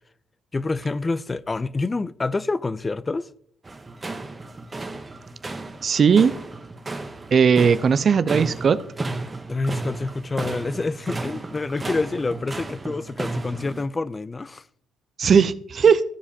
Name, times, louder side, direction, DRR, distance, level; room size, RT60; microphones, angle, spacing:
voice 1, 0.5-3.3 9.5-14.6, left 3 dB, 25° left, 0.3 m, -27 dB
sound 1, 3.6-13.8, right 3 dB, 25° right, 0.8 m, -33 dB
voice 2, 5.8-6.4 7.3-8.8 15.2-16.0, right 6 dB, 45° right, 0.4 m, -18 dB
14.0 x 4.9 x 2.8 m
supercardioid pair, 60°, 0 cm